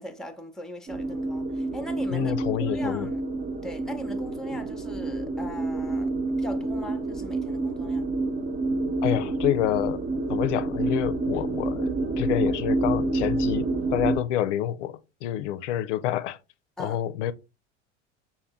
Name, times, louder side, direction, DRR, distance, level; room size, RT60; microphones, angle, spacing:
voice 1, 0.0-2.3 2.7-3.2 3.6-8.1 16.8-17.0, equal, ahead, 0.6 m, -40 dB
sound 1, 0.9-14.2, right 2 dB, 30° right, 0.8 m, -28 dB
voice 2, 2.1-3.1 9.0-16.4 16.8-17.3, left 12 dB, 75° left, 0.5 m, -28 dB
5.7 x 2.2 x 3.5 m
hypercardioid pair, 85°, 36 cm